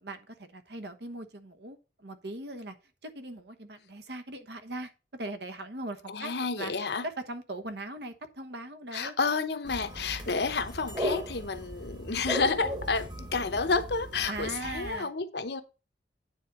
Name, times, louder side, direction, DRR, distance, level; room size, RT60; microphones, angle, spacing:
voice 1, 0.0-2.7 3.0-6.7 7.0-9.1 14.3-15.1, right 2 dB, 60° right, 1.1 m, -40 dB
voice 2, 6.1-7.1 8.9-15.6, left 4 dB, 65° left, 0.9 m, -30 dB
sound 1, 9.6-15.0, equal, 25° right, 1.5 m, -37 dB
9.4 x 4.0 x 6.7 m
head